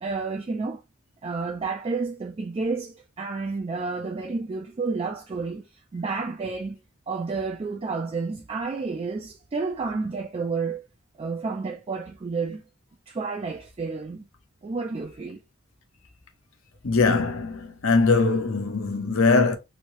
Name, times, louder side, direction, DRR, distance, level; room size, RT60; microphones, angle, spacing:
voice 1, 0.0-0.8 1.2-5.6 5.9-6.8 7.1-10.8 11.2-12.6 13.1-14.2 14.6-15.4, right 4 dB, 30° right, 0.3 m, -30 dB
voice 2, 16.8-19.6, left 4 dB, 70° left, 0.8 m, -21 dB
3.1 x 2.7 x 2.9 m
head